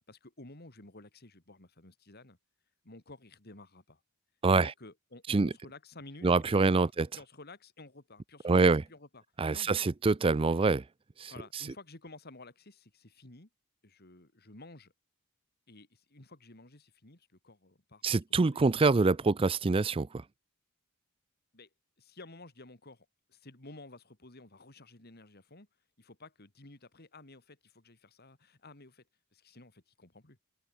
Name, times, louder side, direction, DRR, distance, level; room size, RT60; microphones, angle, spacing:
voice 1, 0.1-2.4 2.8-4.0 4.6-9.2 9.5-9.7 11.3-13.5 13.8-14.9 15.7-18.6 19.2-19.3 21.5-21.7 22.0-25.7 26.0-29.0 29.3-30.4, left 2 dB, 45° left, 2.9 m, -53 dB
voice 2, 6.2-7.1 8.4-8.8 9.4-10.8 11.2-11.6 18.0-20.1, right 3 dB, 25° right, 0.4 m, -25 dB
open air
head